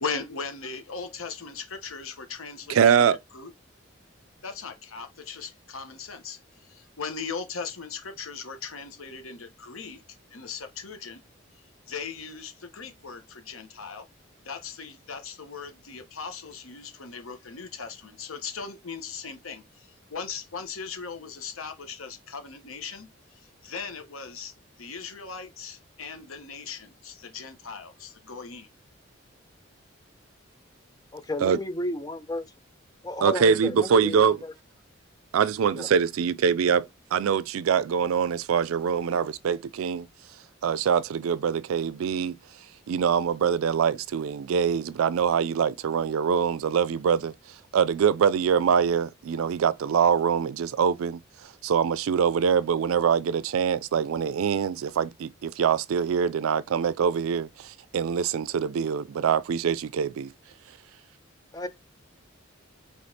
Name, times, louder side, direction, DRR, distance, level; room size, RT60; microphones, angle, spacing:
voice 1, 0.0-3.1 3.3-3.5 4.4-6.4 6.7-10.0 10.3-11.2 11.9-14.0 14.4-23.1 23.6-24.5 24.8-28.7, left 5 dB, 90° left, 1.0 m, -38 dB
voice 2, 2.7-3.2 31.4-31.6 33.2-34.4 35.3-40.1 40.6-42.3 42.9-47.3 47.7-60.3, right 7 dB, 85° right, 0.4 m, -24 dB
voice 3, 31.1-32.5 33.0-34.5 35.7-35.9 61.5-61.7, left 1 dB, 20° left, 0.5 m, -32 dB
5.1 x 3.2 x 2.7 m
head